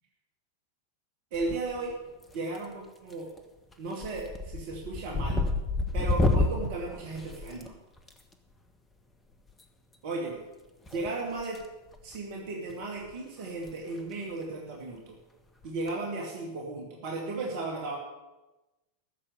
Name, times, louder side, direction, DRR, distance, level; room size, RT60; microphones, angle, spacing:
sound 1, 1.3-1.9 2.2-2.7 3.1-3.4 3.7-8.1 9.5-9.6 10.9-11.7 11.9-12.2 12.7-12.8 13.0-13.1 13.5-13.7 14.0-14.1 15.6-15.9, left 2 dB, 15° left, 1.4 m, -30 dB
voice 1, 1.3-2.0 2.3-3.3 3.8-5.4 5.9-7.7 10.0-10.4 10.9-11.6 12.0-15.2 15.6-18.0, right 3 dB, 50° right, 0 dB, 2.3 m, -35 dB
13.5 x 7.2 x 8.3 m, 1.0 s
figure-of-eight pair, 90°, 0 cm